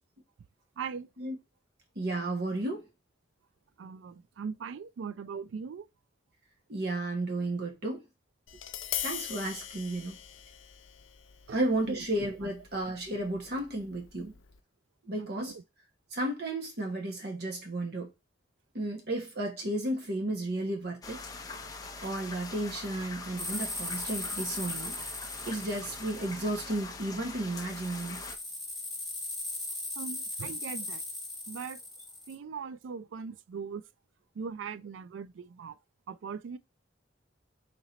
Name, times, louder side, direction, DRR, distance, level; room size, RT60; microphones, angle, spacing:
voice 1, 0.8-1.1 3.8-5.9 11.5-11.6 11.8-12.0 12.4-12.5 15.2-15.6 30.0-31.0 31.5-31.8 32.3-33.8 34.4-35.8 36.1-36.6, right 6 dB, 80° right, 0.3 m, -40 dB
voice 2, 1.9-2.8 6.7-8.0 9.0-10.2 11.5-14.3 15.0-15.5 16.1-18.1 18.7-21.2 22.0-24.9 25.5-28.2, right 1 dB, 55° right, 1.1 m, -33 dB
Tap, 8.5-14.6, left 11 dB, 90° left, 0.5 m, -42 dB
sound 1, 21.0-28.4, left 3 dB, 20° left, 0.5 m, -43 dB
sound 2, 23.4-26.9 27.5-32.4, left 2 dB, ahead, 1.4 m, -38 dB
4.3 x 2.9 x 4.0 m
head